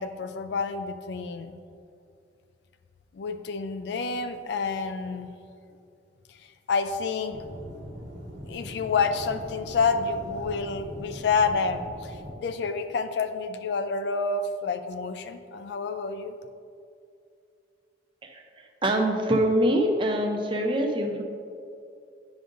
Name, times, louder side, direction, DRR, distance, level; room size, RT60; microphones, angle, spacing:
voice 1, 0.0-1.5 3.1-5.3 6.4-7.4 8.4-16.3, left 4 dB, 60° left, 9 dB, 0.3 m, -29 dB
Aircraft / Engine, 7.3-12.3, equal, 80° right, 1.1 m, -41 dB
voice 2, 18.8-21.2, right 1 dB, 25° right, 3 dB, 0.5 m, -24 dB
9.9 x 5.1 x 2.6 m, 2.4 s
head